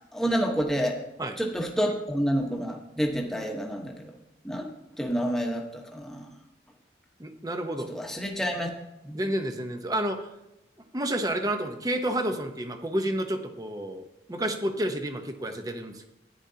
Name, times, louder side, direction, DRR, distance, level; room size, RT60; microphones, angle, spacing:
voice 1, 0.1-1.0 1.4-4.1 4.4-4.7 5.0-6.3 7.9-8.7 9.0-9.2, equal, ahead, 1 dB, 1.1 m, -28 dB
voice 2, 7.2-7.9 9.1-10.2 10.9-16.1, right 1 dB, 20° right, 6 dB, 0.8 m, -30 dB
14.0 x 9.9 x 2.8 m, 0.90 s
head